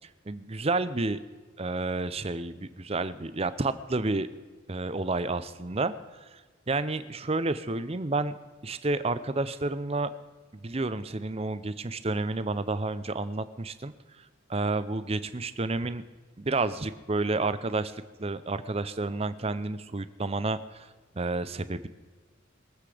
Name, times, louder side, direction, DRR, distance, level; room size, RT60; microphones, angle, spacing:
voice 1, 0.3-1.2 1.6-4.3 4.7-5.9 6.2-6.4 6.7-8.3 8.6-10.1 10.5-14.2 14.5-16.0 16.4-20.9 21.2-21.9, right 3 dB, 30° right, 13 dB, 0.6 m, -30 dB
22.5 x 8.1 x 5.0 m, 1.4 s
head